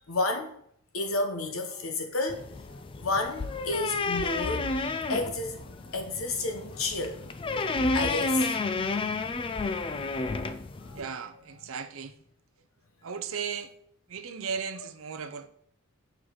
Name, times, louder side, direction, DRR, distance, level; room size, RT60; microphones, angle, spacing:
voice 1, 0.1-0.5 0.9-2.5 3.0-7.2 7.9-8.5 10.8-11.0, left 2 dB, 75° left, 1.0 m, -31 dB
sound 1, 2.3-11.0, left 3 dB, 25° left, 0.3 m, -31 dB
voice 2, 10.9-12.1 13.0-13.7 14.1-15.5, right 6 dB, 70° right, 0.6 m, -36 dB
6.5 x 4.6 x 3.9 m
head